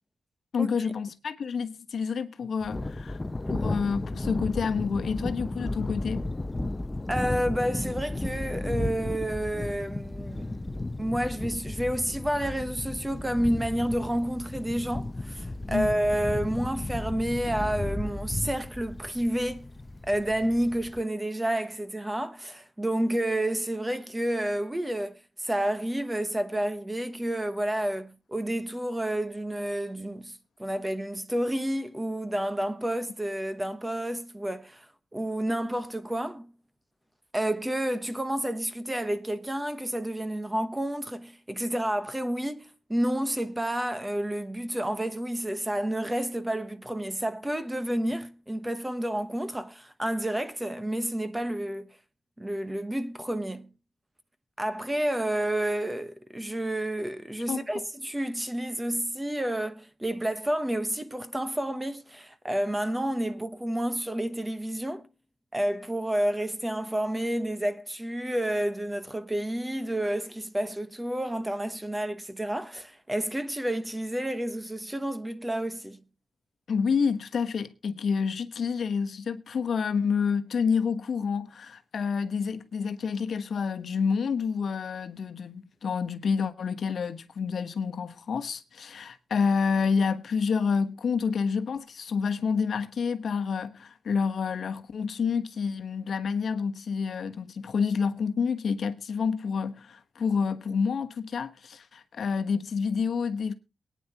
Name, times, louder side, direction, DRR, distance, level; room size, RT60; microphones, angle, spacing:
voice 1, 0.5-3.2 3.5-6.3 15.7-15.9 48.0-48.1 57.5-57.7 76.7-103.5, left 5 dB, 65° left, 1.1 m, -28 dB
Thunder, 2.6-21.0, left 2 dB, 20° left, 0.6 m, -34 dB
voice 2, 7.1-10.5 11.0-19.7 20.1-34.9 35.1-36.5 37.3-51.9 52.4-53.7 54.6-65.1 65.5-76.0, right 1 dB, 10° right, 1.0 m, -30 dB
23.0 x 9.5 x 2.9 m
wide cardioid pair, 105°, 0 cm